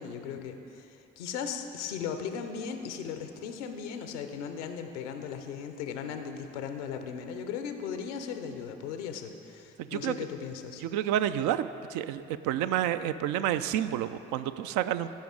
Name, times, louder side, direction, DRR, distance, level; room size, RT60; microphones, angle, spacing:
voice 1, 0.0-10.8, left 7 dB, 80° left, 7 dB, 0.7 m, -37 dB
voice 2, 9.8-10.1 10.8-15.1, right 11 dB, 60° right, 12 dB, 0.4 m, -29 dB
14.5 x 5.3 x 3.7 m, 2.7 s
figure-of-eight pair, 45°, 35 cm